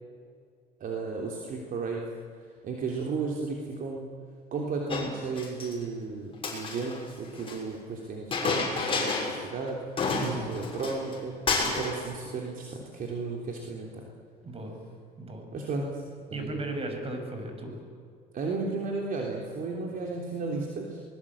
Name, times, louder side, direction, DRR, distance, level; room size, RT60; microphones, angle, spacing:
voice 1, 0.8-2.0 2.6-4.1 4.5-9.8 10.2-11.3 11.6-14.0 15.5-15.9 16.3-16.6 18.3-21.0, right 4 dB, 55° right, 0 dB, 3.3 m, -34 dB
Chink clink, 4.9-5.7 6.3-7.6 8.3-9.4 9.7-9.8 10.0-11.2 11.5-12.0, left 4 dB, 30° left, 6.3 m, -30 dB
voice 2, 10.2-10.6 14.4-14.8 15.2-15.5 16.3-17.8, right 2 dB, 35° right, 4 dB, 6.3 m, -36 dB
24.5 x 20.5 x 8.7 m, 2.2 s
cardioid pair, 110°, 17 cm